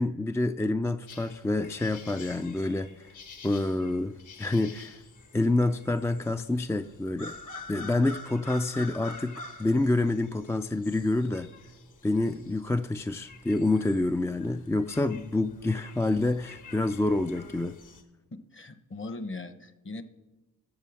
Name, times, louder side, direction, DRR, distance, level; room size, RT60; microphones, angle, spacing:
voice 1, 0.0-3.1 3.4-5.0 5.3-7.3 7.7-11.5 12.0-17.8, left 2 dB, 10° left, 9 dB, 0.3 m, -27 dB
sound 1, 1.1-18.0, left 3 dB, 60° left, 1.6 m, -47 dB
voice 2, 18.3-20.0, left 2 dB, 35° left, 11 dB, 1.0 m, -39 dB
13.0 x 6.7 x 6.3 m, 1.1 s
cardioid pair, 80°, 35 cm